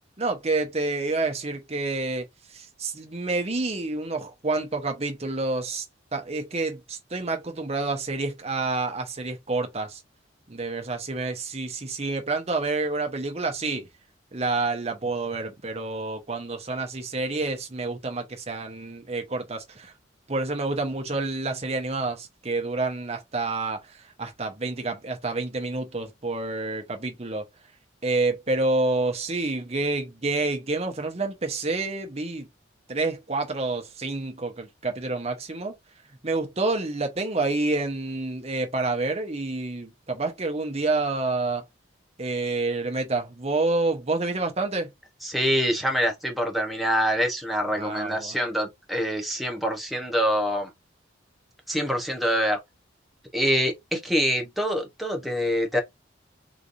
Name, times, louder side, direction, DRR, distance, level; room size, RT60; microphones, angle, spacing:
voice 1, 0.2-5.8 6.1-10.0 10.5-13.9 14.3-19.9 20.3-27.5 28.0-32.5 32.9-35.8 36.2-41.6 42.2-44.9 47.8-48.4, right 3 dB, 30° right, 0.9 m, -28 dB
voice 2, 45.2-50.7 51.7-52.6 53.3-55.8, equal, ahead, 1.0 m, -25 dB
4.0 x 3.3 x 2.6 m
head